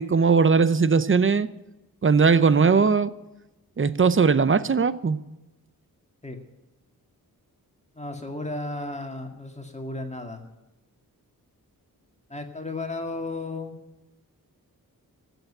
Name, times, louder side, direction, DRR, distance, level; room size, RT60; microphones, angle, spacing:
voice 1, 0.0-1.5 2.0-3.1 3.8-5.2, right 5 dB, 35° right, 15 dB, 0.7 m, -19 dB
voice 2, 8.0-10.4 12.3-13.8, left 2 dB, 20° left, 4 dB, 2.1 m, -34 dB
15.0 x 8.2 x 9.8 m, 1.0 s
wide cardioid pair, 120°, 36 cm